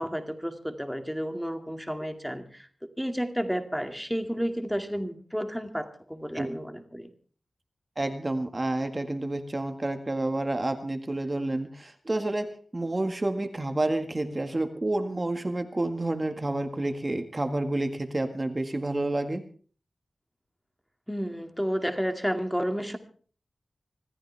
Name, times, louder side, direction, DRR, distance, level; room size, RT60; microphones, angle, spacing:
voice 1, 0.0-2.7 3.0-7.1 21.1-23.0, equal, ahead, 7 dB, 2.2 m, -31 dB
voice 2, 8.0-19.4, right 2 dB, 25° right, 6 dB, 1.8 m, -29 dB
25.5 x 14.0 x 3.4 m, 0.42 s
wide cardioid pair, 100°, 0 cm